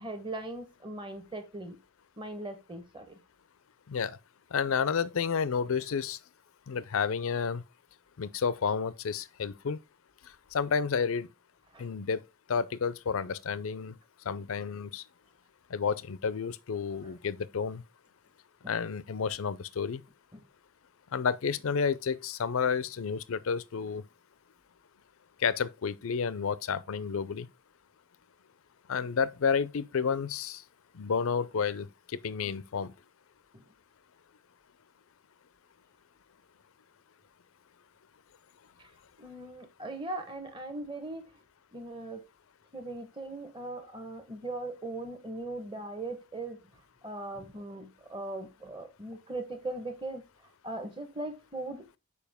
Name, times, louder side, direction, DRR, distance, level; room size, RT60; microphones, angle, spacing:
voice 1, 0.0-1.8 2.2-3.2 11.7-11.9 18.6-18.7 20.3-20.4 33.5-33.6 38.8-38.9 39.2-41.3 41.7-42.2 42.7-46.6 47.0-50.2 50.6-52.0, right 2 dB, 20° right, 1.0 m, -39 dB
voice 2, 3.9-4.2 4.5-6.2 6.7-7.6 8.2-9.8 10.5-11.3 11.8-12.2 12.5-13.9 14.3-15.0 15.7-17.8 18.7-20.0 21.1-24.0 25.4-27.5 28.9-30.6 30.9-32.9, left 6 dB, 70° left, 0.5 m, -30 dB
6.9 x 4.8 x 3.5 m
head